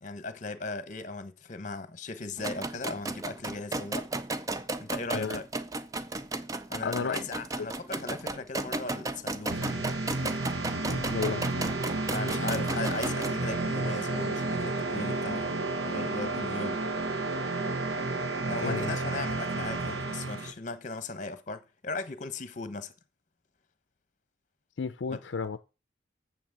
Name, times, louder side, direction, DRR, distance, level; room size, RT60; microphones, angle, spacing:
voice 1, 0.0-4.1 4.8-5.5 6.7-9.9 12.1-15.5 15.8-16.8 18.5-22.9 25.1-25.2, left 3 dB, 40° left, 1.0 m, -38 dB
sound 1, 2.4-13.3, right 2 dB, 20° right, 0.5 m, -35 dB
voice 2, 6.8-7.2 10.9-11.5 18.6-18.9 24.8-25.6, left 5 dB, 75° left, 0.5 m, -32 dB
sound 2, 9.5-20.5, right 2 dB, 85° right, 1.2 m, -31 dB
7.2 x 5.8 x 7.4 m
head